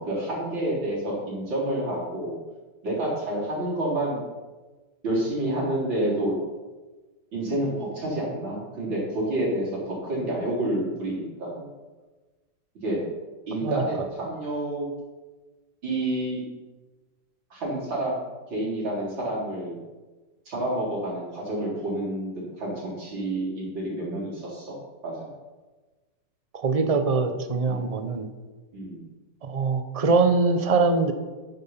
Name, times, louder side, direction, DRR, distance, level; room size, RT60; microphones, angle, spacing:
voice 1, 0.0-2.4 2.8-4.2 5.0-6.4 7.3-11.7 12.8-13.0 13.5-14.9 15.8-16.4 17.5-18.2 18.5-19.8 20.5-22.3 22.6-24.7 25.0-25.3 27.7-27.9 28.7-29.0, right 1 dB, 75° right, -5 dB, 4.7 m, -29 dB
voice 2, 26.5-28.3 29.4-31.1, right 4 dB, 35° right, 8 dB, 0.5 m, -23 dB
11.0 x 9.3 x 5.8 m, 1.3 s
omnidirectional pair, 2.1 m